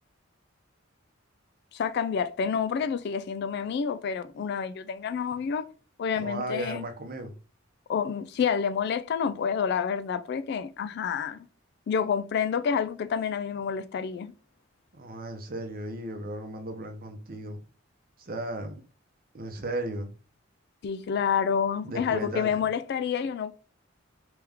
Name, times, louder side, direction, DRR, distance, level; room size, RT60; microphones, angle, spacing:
voice 1, 1.7-5.7 6.0-6.9 7.9-11.5 11.9-14.3 20.8-23.5, left 7 dB, 55° left, 0.3 m, -28 dB
voice 2, 6.2-7.4 14.9-17.6 18.2-18.8 19.3-20.1 21.8-22.5, right 1 dB, 50° right, 0.7 m, -35 dB
3.5 x 3.0 x 3.5 m
head